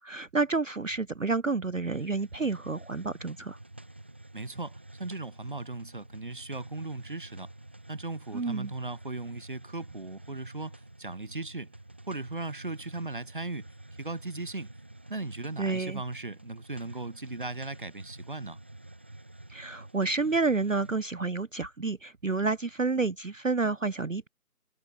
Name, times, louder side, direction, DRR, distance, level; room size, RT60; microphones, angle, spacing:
voice 1, 0.0-3.6 8.3-8.7 15.6-16.0 19.5-24.3, right 3 dB, 55° right, 0.7 m, -29 dB
Hiss, 1.8-21.1, right 1 dB, 5° right, 2.2 m, -49 dB
voice 2, 4.3-7.5 7.9-11.7 12.1-13.7 14.0-14.7 15.1-18.6, right 2 dB, 30° right, 3.3 m, -37 dB
figure-of-eight pair, 175°, 47 cm